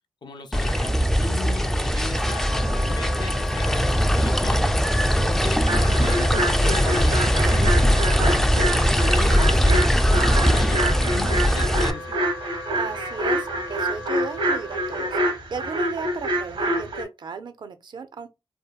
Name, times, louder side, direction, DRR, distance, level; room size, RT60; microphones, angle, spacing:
voice 1, 0.2-2.5 2.8-4.7 5.3-9.9 10.2-12.2, left 4 dB, 55° left, 0.5 m, -37 dB
sound 1, 0.5-11.9, equal, 5° left, 0.3 m, -20 dB
Wind instrument woodwind instrument, 2.0-15.2, left 2 dB, 90° left, 0.9 m, -38 dB
voice 2, 5.2-5.5 12.7-18.3, right 5 dB, 55° right, 0.4 m, -35 dB
sound 2, 5.7-17.0, right 1 dB, 70° right, 0.8 m, -27 dB
2.6 x 2.2 x 2.4 m
cardioid pair, 55°, 9 cm